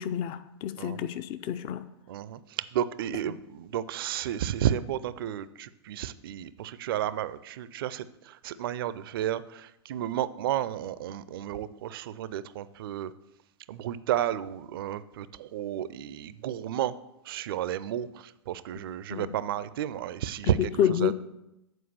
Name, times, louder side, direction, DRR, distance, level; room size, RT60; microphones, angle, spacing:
voice 1, 0.0-1.8 19.1-19.3 20.8-21.1, left 9 dB, 35° left, 12 dB, 0.5 m, -28 dB
voice 2, 2.1-13.1 13.7-17.0 17.3-20.7 21.0-21.1, right 11 dB, 55° right, 16 dB, 0.5 m, -32 dB
8.0 x 4.6 x 6.8 m, 0.89 s
figure-of-eight pair, 95°, 15 cm